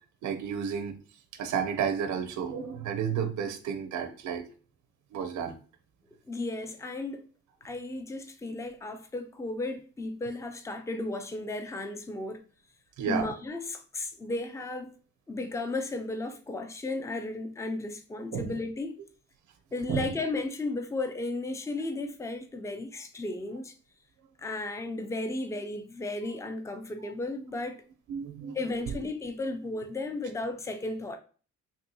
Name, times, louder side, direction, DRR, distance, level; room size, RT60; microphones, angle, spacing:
voice 1, 0.2-0.9 1.4-4.4 5.1-5.6 13.0-13.3 18.3-18.5 19.9-20.1 27.0-27.1 28.1-28.6 28.9-29.0, right 7 dB, 75° right, 0.6 m, -32 dB
voice 2, 6.3-7.3 7.6-12.4 13.1-14.9 15.3-19.0 19.7-23.7 24.4-27.8 28.5-31.2, left 2 dB, 10° left, 0.4 m, -34 dB
3.6 x 2.7 x 2.6 m
cardioid pair, 90°, 30 cm